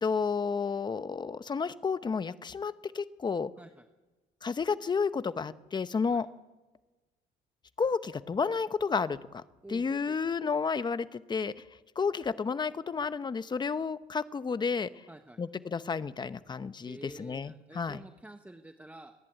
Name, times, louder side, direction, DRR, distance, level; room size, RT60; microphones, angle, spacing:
voice 1, 0.0-3.5 4.4-6.3 7.8-9.4 9.7-11.5 12.0-15.0 15.4-18.0, left 5 dB, 25° left, 13 dB, 0.9 m, -31 dB
voice 2, 9.6-10.2 15.1-15.4 16.9-19.1, right 1 dB, 10° right, 6 dB, 1.1 m, -49 dB
27.0 x 11.0 x 8.8 m, 1.2 s
cardioid pair, 110°, 17 cm